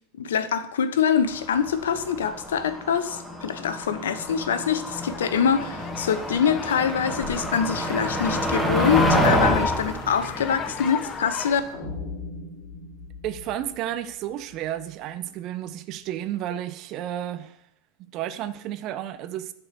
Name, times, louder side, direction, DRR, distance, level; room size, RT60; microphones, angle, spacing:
voice 1, 0.2-11.6, left 7 dB, 70° left, 0.8 m, -24 dB
Motor vehicle (road), 1.3-11.7, equal, 5° right, 2.1 m, -28 dB
sound 1, 4.9-11.6, left 7 dB, 30° left, 0.9 m, -33 dB
sound 2, 11.7-14.8, left 3 dB, 50° left, 3.2 m, -39 dB
voice 2, 13.2-17.6 18.1-19.5, right 11 dB, 45° right, 0.8 m, -32 dB
11.0 x 4.5 x 6.9 m
figure-of-eight pair, 90°, 0 cm